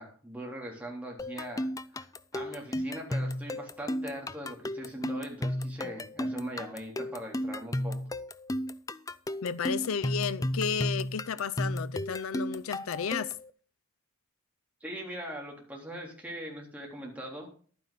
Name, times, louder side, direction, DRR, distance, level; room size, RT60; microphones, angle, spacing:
voice 1, 0.0-1.7 2.0-2.1 2.3-8.1 14.8-17.5, right 1 dB, 5° right, 3.5 m, -41 dB
sound 1, 1.2-13.5, left 1 dB, 15° left, 0.4 m, -34 dB
voice 2, 9.4-13.3, left 6 dB, 80° left, 0.5 m, -32 dB
11.5 x 9.4 x 4.0 m
head